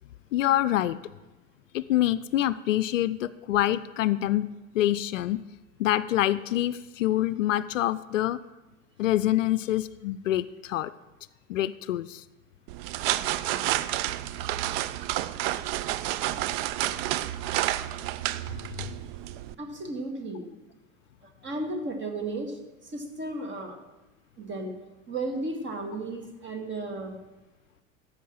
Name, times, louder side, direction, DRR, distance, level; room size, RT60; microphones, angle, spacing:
voice 1, 0.3-1.0 1.7-5.4 5.8-8.4 9.0-10.9 11.5-12.2 18.5-18.9, left 13 dB, 70° left, 16 dB, 0.5 m, -26 dB
sound 1, 12.7-19.5, right 14 dB, 50° right, 0.5 m, -30 dB
voice 2, 19.6-20.5 21.4-23.8 24.4-24.7 25.1-27.2, right 2 dB, 30° right, 4 dB, 1.9 m, -34 dB
14.0 x 5.7 x 7.1 m, 1.1 s
figure-of-eight pair, 75°, 39 cm